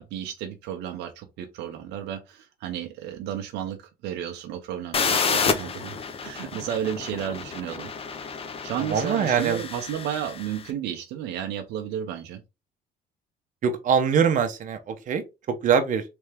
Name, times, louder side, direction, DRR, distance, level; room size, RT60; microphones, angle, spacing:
voice 1, 0.0-7.9 8.6-12.4, right 10 dB, 85° right, 0.8 m, -33 dB
sound 1, 4.9-10.6, left 5 dB, 35° left, 0.7 m, -29 dB
voice 2, 8.9-9.6 13.6-16.0, right 7 dB, 50° right, 0.9 m, -23 dB
3.5 x 3.3 x 3.4 m
cardioid pair, 110°, 17 cm